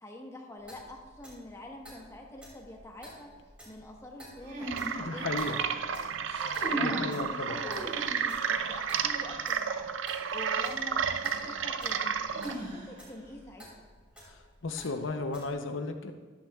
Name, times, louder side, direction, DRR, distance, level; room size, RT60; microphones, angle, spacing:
voice 1, 0.0-3.3 3.6-6.1 6.6-9.9 10.3-12.1 12.5-13.6, left 1 dB, 15° left, 0 dB, 1.2 m, -46 dB
Clock, 0.6-15.5, equal, 5° right, 2.6 m, -53 dB
sound 1, 4.4-5.6 6.2-7.1 7.5-8.4 10.4-10.5 12.3-13.2, equal, 45° right, 3.5 m, -38 dB
sound 2, 4.6-12.5, right 7 dB, 85° right, 0.5 m, -32 dB
voice 2, 5.0-5.6 6.8-7.6 14.6-16.1, left 3 dB, 85° left, 6 dB, 0.7 m, -34 dB
13.0 x 11.5 x 2.4 m, 1.4 s
head